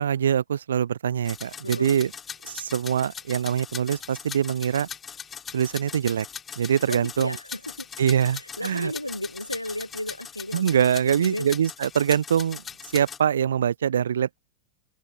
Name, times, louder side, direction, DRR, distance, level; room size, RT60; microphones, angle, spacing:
voice 1, 0.0-2.1 2.4-4.9 5.5-6.3 6.6-7.4 8.0-8.9 10.5-12.6 12.9-14.4, right 8 dB, 65° right, 0.5 m, -24 dB
sound 1, 1.2-13.2, left 7 dB, 20° left, 3.2 m, -40 dB
voice 2, 1.6-2.1 6.9-7.9 8.3-11.5, left 1 dB, 85° left, 0.9 m, -34 dB
open air
figure-of-eight pair, 90°, 0 cm